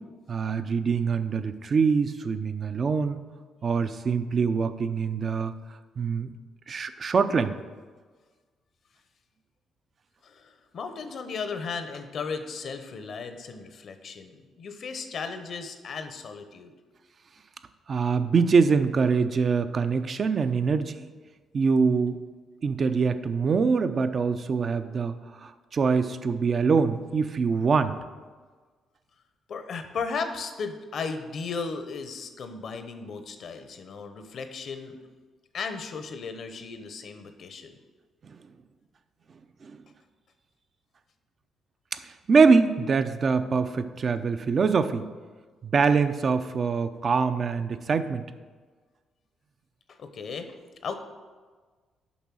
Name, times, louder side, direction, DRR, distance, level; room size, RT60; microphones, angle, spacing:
voice 1, 0.3-3.2 3.6-5.5 6.0-6.3 6.7-7.5 17.9-21.1 21.5-22.2 22.6-25.1 25.4-28.0 38.3-38.4 39.6-39.8 41.9-45.1 45.6-48.2, right 5 dB, 45° right, 10 dB, 0.5 m, -24 dB
voice 2, 10.2-16.7 29.5-35.0 35.5-37.7 49.9-50.6 50.8-50.9, left 5 dB, 60° left, 8 dB, 0.8 m, -35 dB
7.1 x 5.3 x 6.2 m, 1.4 s
cardioid pair, 90°, 0 cm